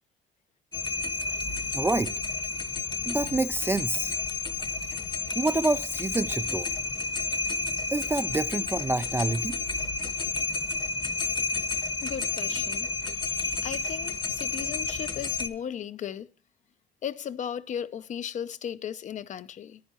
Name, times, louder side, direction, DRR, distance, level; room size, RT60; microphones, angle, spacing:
sound 1, 0.7-15.5, left 4 dB, 30° left, 0.9 m, -31 dB
voice 1, 1.7-2.1 3.1-4.1 5.4-6.7 7.9-9.6, right 2 dB, 15° right, 0.3 m, -27 dB
voice 2, 12.0-12.9 13.3-16.3 17.0-19.8, left 9 dB, 45° left, 0.6 m, -36 dB
10.0 x 10.0 x 2.8 m
cardioid pair, 110°, 17 cm